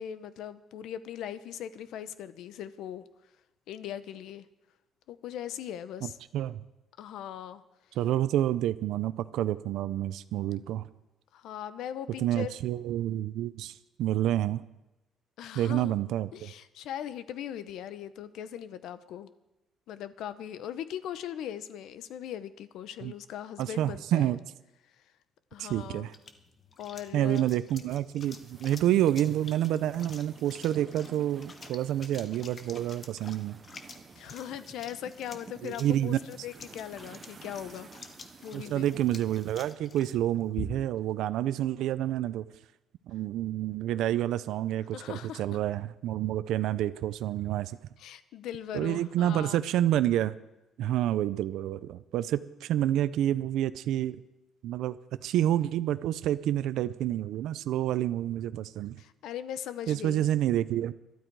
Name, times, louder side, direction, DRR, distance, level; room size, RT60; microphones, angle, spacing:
voice 1, 0.0-3.0 3.7-4.5 5.1-6.2 7.0-7.6 11.3-12.6 15.4-16.0 16.3-19.3 19.9-24.3 25.5-26.1 26.8-27.5 34.2-37.9 38.4-38.9 44.9-45.4 48.0-49.7 59.0-60.3, left 10 dB, 70° left, 13 dB, 0.8 m, -39 dB
voice 2, 6.0-6.6 8.0-10.8 12.2-14.6 15.5-16.5 23.0-23.1 23.6-24.4 25.6-26.1 27.1-33.6 35.6-36.2 38.5-42.4 43.1-47.8 48.7-50.4 50.8-54.2 54.6-55.0 55.2-58.9 59.9-60.9, right 12 dB, 70° right, 13 dB, 0.5 m, -28 dB
sound 1, 25.5-41.1, left 3 dB, 25° left, 1.1 m, -49 dB
sound 2, 28.2-39.7, right 5 dB, 25° right, 0.9 m, -52 dB
21.5 x 12.5 x 4.7 m, 0.95 s
cardioid pair, 175°, 0 cm